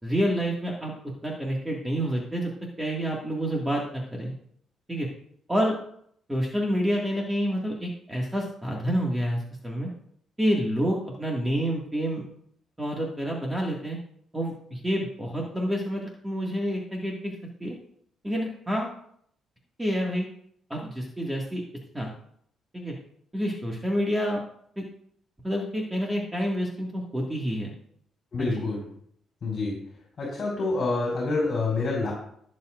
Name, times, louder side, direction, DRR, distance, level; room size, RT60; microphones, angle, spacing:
voice 1, 0.0-0.9 1.2-2.5 2.8-4.3 4.9-5.1 5.5-5.8 6.3-9.9 10.4-12.2 12.8-14.0 14.3-17.3 17.6-17.8 18.2-18.9 19.8-20.3 20.7-21.6 21.9-22.1 22.7-22.9 23.3-24.4 24.8-24.9 25.4-27.7 28.4-28.6, equal, 10° right, -2 dB, 2.0 m, -28 dB
voice 2, 28.3-28.8 29.4-29.8 30.2-32.1, left 3 dB, 45° left, -3 dB, 4.8 m, -27 dB
19.5 x 7.2 x 2.6 m, 0.66 s
cardioid pair, 90°, 0 cm